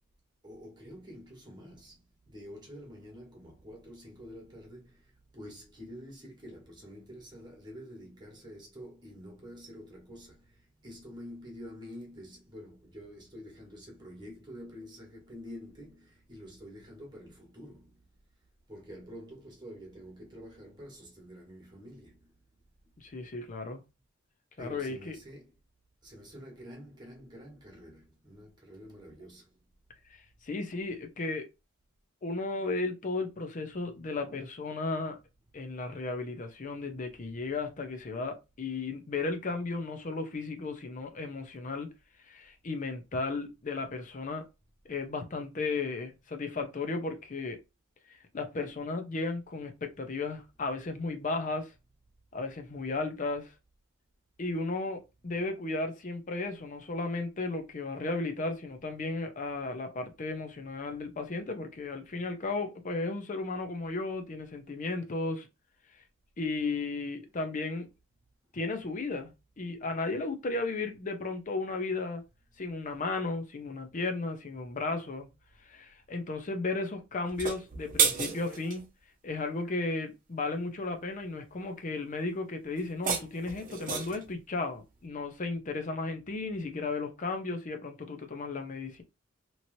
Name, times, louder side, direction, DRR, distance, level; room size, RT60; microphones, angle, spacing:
voice 1, 0.4-18.0 18.7-22.3 24.6-25.5 26.0-29.5, equal, 20° right, 1.4 m, -48 dB
voice 2, 23.0-23.8 24.6-25.2 30.1-31.5 32.2-35.2 35.5-41.9 42.2-44.5 44.9-47.6 48.1-51.7 52.3-53.5 54.4-65.5 65.9-66.0 66.4-67.9 68.5-72.2 72.6-75.3 75.6-78.9 79.2-89.0, left 3 dB, 40° left, 0.5 m, -34 dB
sound 1, 77.3-78.8 82.8-84.3, right 6 dB, 45° right, 0.7 m, -31 dB
3.0 x 2.8 x 2.6 m
head